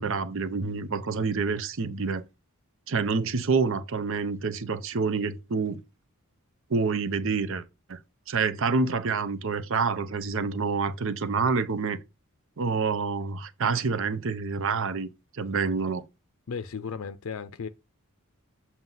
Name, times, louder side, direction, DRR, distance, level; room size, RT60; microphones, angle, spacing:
voice 1, 0.0-2.2 2.9-5.8 6.7-7.6 7.9-8.0 8.3-12.0 12.6-15.1 15.4-16.0, right 4 dB, 60° right, 0.7 m, -27 dB
voice 2, 16.5-17.7, left 6 dB, 65° left, 0.5 m, -35 dB
7.4 x 2.8 x 5.5 m
head